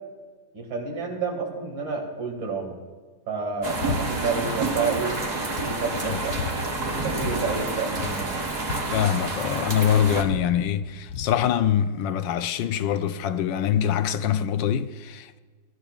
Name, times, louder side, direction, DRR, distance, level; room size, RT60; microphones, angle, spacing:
voice 1, 0.5-2.7 3.3-5.2 5.7-6.4 6.8-8.4, right 4 dB, 85° right, 2.9 m, -29 dB
sound 1, 3.6-10.2, right 3 dB, 30° right, 0.9 m, -29 dB
sound 2, 3.8-4.0 4.3-4.8 5.2-5.3 5.6-6.5 7.2-7.4 7.6-7.7 7.9-9.6 9.9-11.3, left 5 dB, 60° left, 1.1 m, -34 dB
voice 2, 8.9-15.4, left 9 dB, 80° left, 1.3 m, -24 dB
20.0 x 12.0 x 2.4 m
omnidirectional pair, 2.0 m